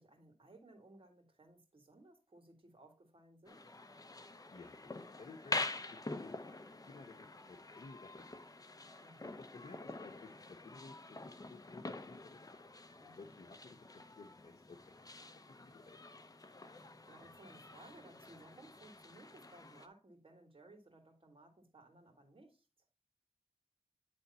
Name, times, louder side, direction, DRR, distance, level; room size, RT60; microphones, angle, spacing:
voice 1, 0.0-3.6 9.0-9.4 13.0-13.3 17.1-22.7, right 2 dB, 55° right, 2.0 m, -60 dB
sound 1, 3.5-19.9, left 2 dB, 35° left, 0.7 m, -46 dB
voice 2, 4.5-6.4 6.9-8.6 9.2-12.4 13.1-13.9 14.2-16.0, left 3 dB, 80° left, 0.8 m, -56 dB
9.6 x 3.5 x 4.1 m
wide cardioid pair, 75°, 11 cm